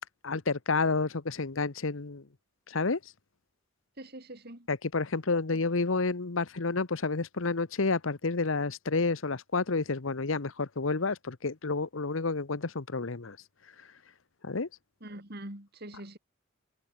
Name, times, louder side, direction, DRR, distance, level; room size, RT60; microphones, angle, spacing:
voice 1, 0.2-2.2 2.7-3.0 4.7-13.4 14.4-14.7, left 3 dB, 75° left, 1.1 m, -30 dB
voice 2, 4.0-4.7 5.5-5.6 15.0-16.2, right 1 dB, 50° right, 5.3 m, -44 dB
head